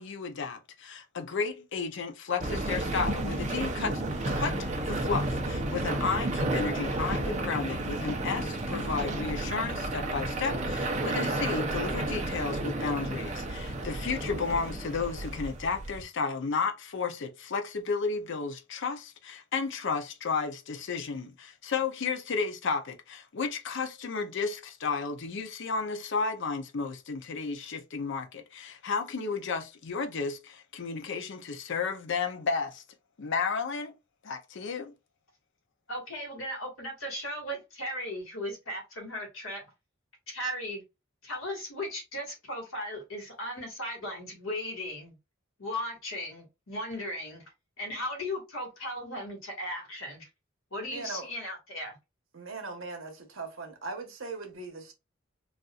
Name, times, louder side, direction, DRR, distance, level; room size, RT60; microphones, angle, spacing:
voice 1, 0.0-32.8 33.2-33.9 34.2-34.9, left 5 dB, 60° left, 0.6 m, -33 dB
sound 1, 2.4-16.0, right 1 dB, 35° right, 0.6 m, -32 dB
voice 2, 35.9-39.7 40.3-40.8 41.2-45.2 45.6-47.4 47.8-50.3 50.7-52.0, left 1 dB, 90° left, 1.7 m, -37 dB
voice 3, 50.9-51.3 52.3-54.9, right 3 dB, 75° right, 1.0 m, -39 dB
4.0 x 2.5 x 2.4 m
head